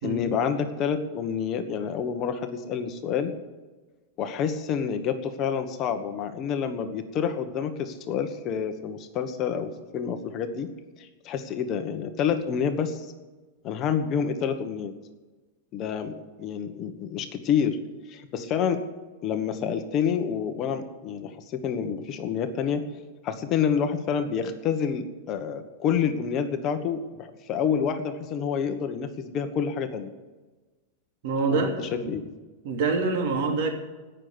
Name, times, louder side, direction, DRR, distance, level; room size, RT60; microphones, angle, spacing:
voice 1, 0.0-3.3 4.2-10.7 11.0-13.1 13.6-14.9 15.7-17.8 18.1-18.8 19.2-22.8 23.2-30.1 31.5-32.3, left 7 dB, 30° left, 7 dB, 1.2 m, -28 dB
voice 2, 31.2-32.1 32.6-33.7, right 4 dB, 55° right, 4 dB, 3.0 m, -26 dB
17.0 x 6.7 x 9.4 m, 1.2 s
supercardioid pair, 160°, 0 cm